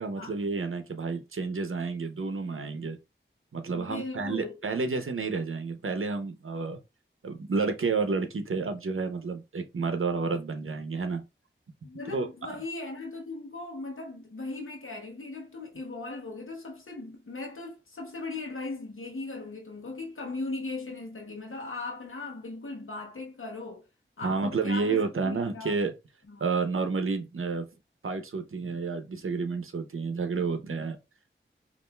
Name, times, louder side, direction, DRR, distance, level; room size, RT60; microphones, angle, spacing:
voice 1, 0.0-3.0 3.5-6.8 7.2-11.2 12.1-12.3 24.2-25.9 26.4-27.7 28.0-31.0, right 4 dB, 90° right, 0.7 m, -30 dB
voice 2, 3.7-4.6 11.8-23.8 24.2-25.8 26.3-26.5, left 3 dB, 85° left, 0.9 m, -38 dB
5.3 x 2.5 x 2.2 m
wide cardioid pair, 45°, 21 cm